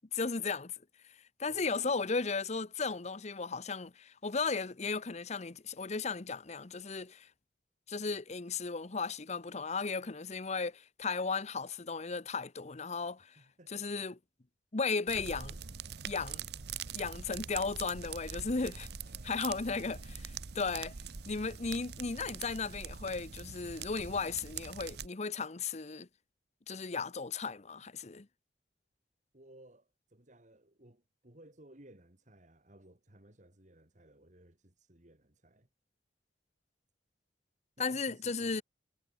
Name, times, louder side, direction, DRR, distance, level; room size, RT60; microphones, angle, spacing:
voice 1, 0.1-0.7 1.4-7.3 7.9-13.4 13.7-14.2 14.7-15.6 16.0-16.4 16.9-18.9 19.2-20.9 21.3-26.1 26.7-28.3 37.8-38.6, left 4 dB, 40° left, 0.9 m, -35 dB
voice 2, 1.5-2.0 13.2-13.9 19.0-19.8 29.3-35.7 37.8-38.6, right 1 dB, 45° right, 3.1 m, -59 dB
sound 1, 15.1-25.1, right 6 dB, 65° right, 0.9 m, -44 dB
head